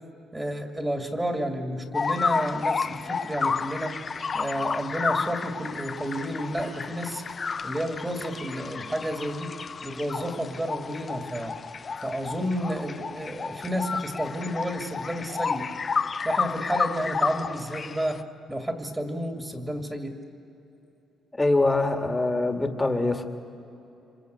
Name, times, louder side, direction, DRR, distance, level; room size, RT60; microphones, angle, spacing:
voice 1, 0.3-4.0 4.3-7.2 7.6-9.5 9.8-11.5 12.0-15.7 16.2-20.2, equal, 15° right, 5 dB, 2.4 m, -31 dB
sound 1, 1.9-18.2, left 5 dB, 40° left, 0.8 m, -31 dB
voice 2, 21.3-23.2, left 2 dB, 15° left, 6 dB, 2.1 m, -24 dB
27.5 x 25.5 x 8.1 m, 2.9 s
cardioid pair, 90°, 0 cm